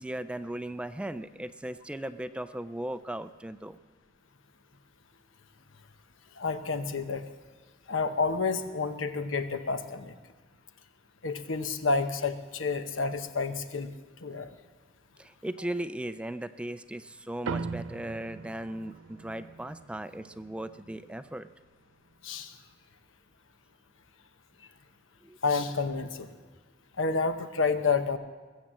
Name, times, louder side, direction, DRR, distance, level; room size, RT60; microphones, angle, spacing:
voice 1, 0.0-3.8 15.2-21.5 25.2-25.4, right 1 dB, 5° right, 12 dB, 0.4 m, -37 dB
voice 2, 6.4-7.3 7.9-10.1 11.2-13.9 14.2-14.5 22.2-22.6 25.4-26.3 27.0-28.2, left 4 dB, 80° left, 9 dB, 0.9 m, -29 dB
sound 1, 17.5-22.2, right 4 dB, 85° right, 0.5 m, -41 dB
21.5 x 7.5 x 7.5 m, 1.3 s
head